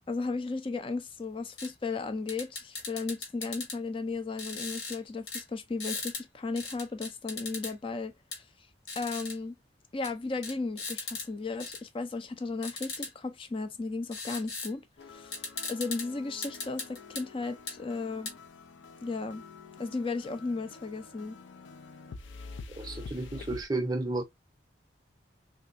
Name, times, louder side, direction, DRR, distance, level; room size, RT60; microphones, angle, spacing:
voice 1, 0.1-8.1 9.0-9.6 9.9-14.8 15.1-15.4 15.7-18.3 19.0-19.4 19.8-21.4, left 3 dB, 30° left, 0.4 m, -35 dB
sound 1, 1.6-1.7 2.3-3.8 4.4-5.0 5.3-5.4 5.8-6.2 6.6-7.7 8.3-8.4 8.9-9.3 10.0-10.1 10.4-11.3 11.6-11.8 12.6-13.1 14.1-14.7 15.0-15.1 15.3-16.1 16.4-17.2 17.7-17.8 18.3-18.4, left 4 dB, 65° left, 1.2 m, -38 dB
sound 2, 15.0-23.6, left 4 dB, 90° left, 0.5 m, -47 dB
voice 2, 22.8-24.2, right 2 dB, 20° right, 0.6 m, -32 dB
3.2 x 2.7 x 2.5 m
head